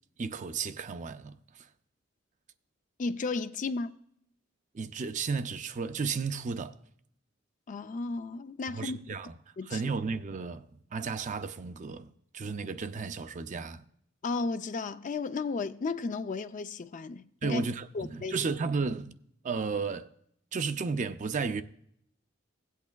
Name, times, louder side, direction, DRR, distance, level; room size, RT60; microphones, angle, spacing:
voice 1, 0.2-1.7 4.7-6.8 8.7-9.3 9.7-13.8 17.4-19.2 19.4-20.1 20.5-21.6, right 4 dB, 40° right, 0.4 m, -33 dB
voice 2, 3.0-3.9 7.7-9.2 9.6-9.8 14.2-17.6 17.9-18.4, left 4 dB, 40° left, 0.4 m, -34 dB
17.0 x 8.3 x 2.3 m
head